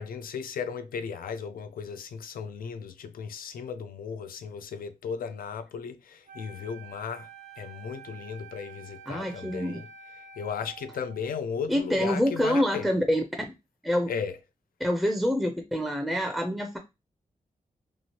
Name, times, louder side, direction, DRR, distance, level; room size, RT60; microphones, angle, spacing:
voice 1, 0.0-7.3 7.6-9.9 10.4-12.9 14.1-14.4, left 6 dB, 85° left, 0.4 m, -36 dB
Wind instrument woodwind instrument, 6.2-11.4, right 6 dB, 60° right, 0.7 m, -48 dB
voice 2, 9.1-9.8 11.7-13.2 13.8-14.1 14.8-16.8, equal, ahead, 0.4 m, -26 dB
2.9 x 2.4 x 2.8 m
wide cardioid pair, 115°, 14 cm